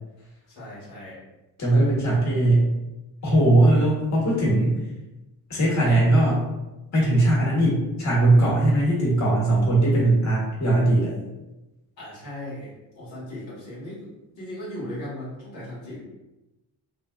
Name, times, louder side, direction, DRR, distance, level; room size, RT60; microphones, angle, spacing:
voice 1, 0.5-1.2 3.2-3.3 12.0-14.1 14.4-16.0, left 1 dB, 70° left, -8 dB, 1.2 m, -37 dB
voice 2, 1.6-2.7 3.2-4.8 5.5-6.4 6.9-11.1, right 1 dB, 35° left, -5 dB, 1.3 m, -19 dB
2.5 x 2.3 x 2.2 m, 1.0 s
hypercardioid pair, 60°, 47 cm